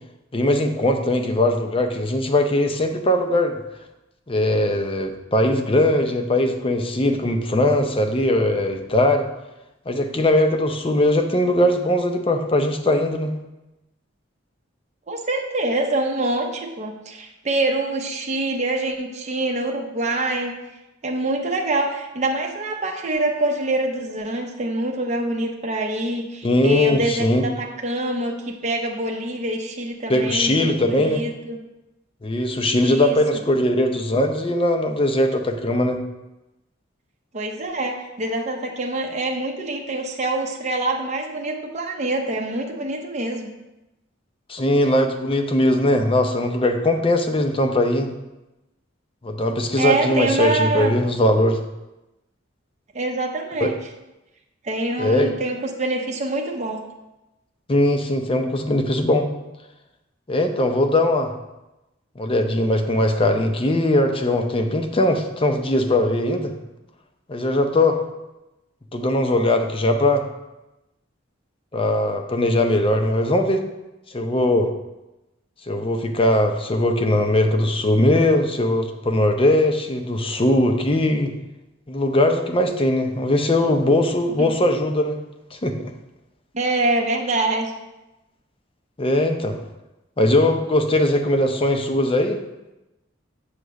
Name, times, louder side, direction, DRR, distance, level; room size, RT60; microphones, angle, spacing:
voice 1, 0.3-3.5 4.3-9.3 9.9-13.3 26.4-27.4 30.1-31.2 32.2-36.0 44.5-48.1 49.2-51.6 53.6-53.7 55.0-55.3 57.7-59.3 60.3-61.3 62.2-66.5 67.3-68.0 68.9-70.3 71.7-73.6 74.1-74.7 75.7-81.3 81.9-85.2 85.5-85.9 89.0-89.6 90.2-92.4, left 1 dB, 30° left, 5 dB, 0.6 m, -20 dB
voice 2, 15.1-20.6 21.0-31.6 32.8-33.2 37.3-43.5 49.8-50.9 52.9-53.8 54.6-56.8 84.4-84.5 86.5-87.7, right 2 dB, 35° right, 1 dB, 0.7 m, -25 dB
8.0 x 3.0 x 6.2 m, 0.99 s
head